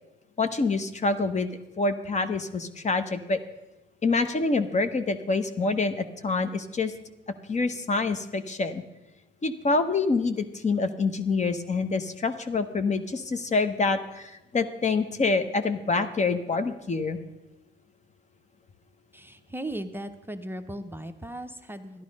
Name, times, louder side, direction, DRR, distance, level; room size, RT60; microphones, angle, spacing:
voice 1, 0.4-1.5 1.8-3.4 4.0-6.9 7.5-8.8 9.4-17.2, left 3 dB, 35° left, 10 dB, 1.0 m, -26 dB
voice 2, 19.1-22.0, right 1 dB, 10° right, 6 dB, 0.7 m, -37 dB
11.5 x 11.0 x 5.3 m, 0.99 s
cardioid pair, 90°, 20 cm